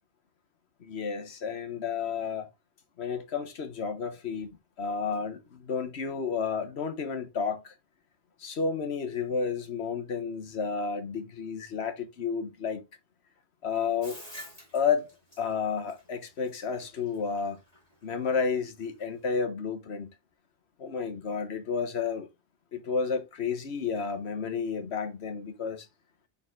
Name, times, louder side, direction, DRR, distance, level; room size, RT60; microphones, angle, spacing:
voice 1, 0.8-2.5 3.0-4.5 4.8-7.7 8.4-12.8 13.6-14.2 14.7-15.1 15.4-17.6 18.0-20.1 20.8-22.3 22.7-25.9, left 5 dB, 75° left, 1.3 m, -31 dB
Bathtub (filling or washing), 14.0-19.4, equal, 35° left, 2.3 m, -49 dB
6.7 x 4.1 x 3.8 m
omnidirectional pair, 1.1 m